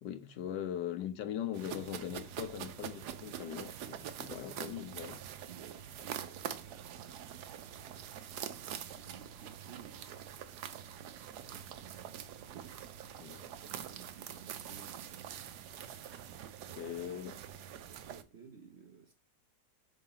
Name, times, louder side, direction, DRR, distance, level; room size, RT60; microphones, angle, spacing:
voice 1, 0.0-5.2 13.2-13.4 16.8-17.4, left 10 dB, 80° left, 1.4 m, -40 dB
sound 1, 1.5-18.2, right 9 dB, 75° right, 1.2 m, -45 dB
voice 2, 5.5-7.8 8.8-10.6 10.9-12.2 13.2-15.7 17.8-19.1, right 6 dB, 55° right, 0.8 m, -57 dB
4.9 x 3.9 x 5.6 m
omnidirectional pair, 1.8 m